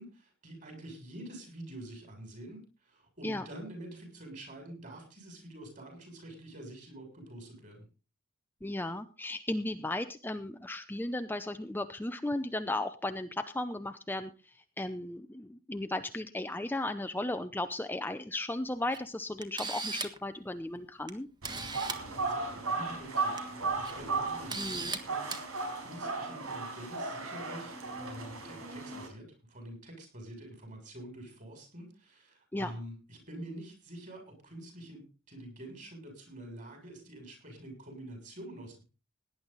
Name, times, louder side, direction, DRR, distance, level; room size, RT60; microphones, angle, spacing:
voice 1, 0.0-7.9 22.2-25.4 25.8-38.8, right 1 dB, 40° right, 4 dB, 7.0 m, -47 dB
voice 2, 8.6-21.3 24.6-24.9 32.5-32.7, left 1 dB, 10° left, 9 dB, 0.6 m, -35 dB
Camera, 18.9-19.0 19.4-20.2 21.1-21.2 21.4-22.0 23.2-23.4 23.8-23.9 24.5-25.0 25.3-25.4, right 4 dB, 20° right, 1.5 m, -36 dB
sound 1, 21.4-29.1, right 3 dB, 90° right, 4.9 m, -36 dB
18.0 x 10.5 x 4.1 m, 0.32 s
head